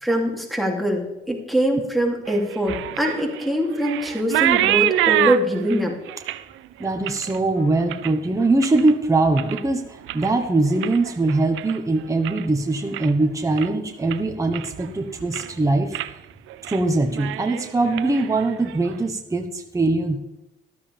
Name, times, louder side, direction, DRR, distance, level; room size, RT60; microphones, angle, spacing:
voice 1, 0.0-5.9, equal, ahead, 1 dB, 2.8 m, -23 dB
sound 1, 2.3-8.9 9.3-9.7 10.0-12.5 12.8-13.2 13.6-13.7 14.1-14.9 15.2-15.6 15.9-16.1 16.5-16.8 17.1-19.0, right 14 dB, 90° right, 0.6 m, -27 dB
voice 2, 6.8-9.8 10.1-16.0 16.7-20.2, right 2 dB, 15° right, 3 dB, 1.2 m, -22 dB
13.5 x 12.5 x 3.5 m, 0.97 s
cardioid pair, 90°, 20 cm